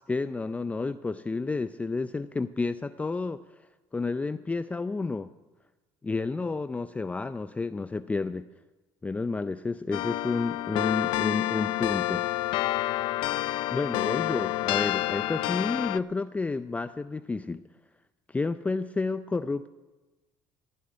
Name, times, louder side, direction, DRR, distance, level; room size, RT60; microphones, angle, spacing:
voice 1, 0.1-3.7 3.9-5.3 6.0-8.4 9.0-12.2 13.7-17.6 18.3-19.7, left 3 dB, 15° left, 11 dB, 0.5 m, -31 dB
sound 1, 9.9-16.0, left 16 dB, 70° left, 0.4 m, -28 dB
16.0 x 7.1 x 9.9 m, 1.2 s
supercardioid pair, 90°, 9 cm